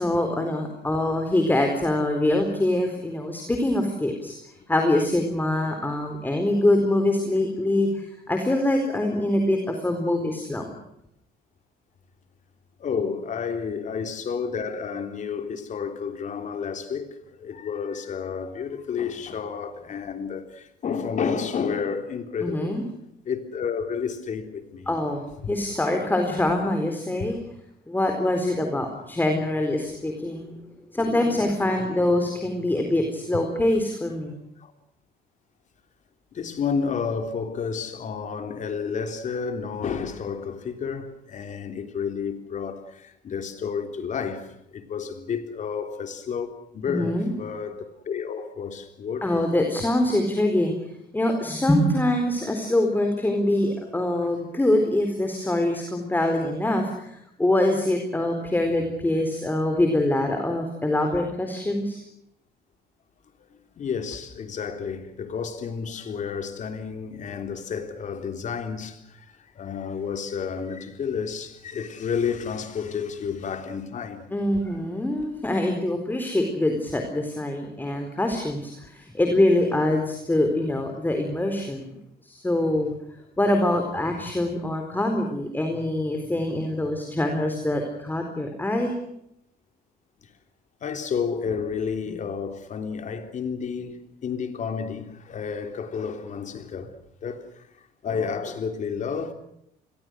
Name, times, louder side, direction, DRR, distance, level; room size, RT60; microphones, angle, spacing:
voice 1, 0.0-4.3 4.7-10.8 22.4-22.8 24.9-27.4 27.9-30.6 30.9-34.3 46.9-47.3 49.2-50.7 51.1-62.0 74.3-82.0 82.2-82.9 83.4-89.0 92.1-92.2, left 1 dB, 10° left, 4.2 m, -24 dB
voice 2, 12.8-22.8 23.3-25.0 25.4-25.5 33.3-33.5 34.6-34.7 36.3-49.4 63.8-74.2 90.8-97.0 97.2-99.3, left 6 dB, 45° left, 3.6 m, -31 dB
29.0 x 21.5 x 6.4 m
cardioid pair, 110°, 17 cm